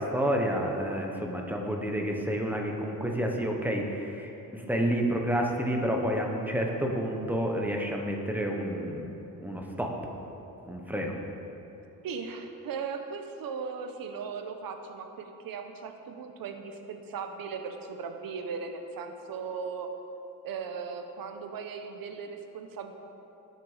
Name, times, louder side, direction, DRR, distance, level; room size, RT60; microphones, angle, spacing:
voice 1, 0.0-9.0 9.4-9.9 10.7-11.1, equal, 5° right, 0 dB, 1.1 m, -29 dB
voice 2, 12.0-19.9 20.4-22.9, right 5 dB, 80° right, 6 dB, 1.1 m, -38 dB
18.5 x 6.8 x 5.0 m, 3.0 s
wide cardioid pair, 155°, 35 cm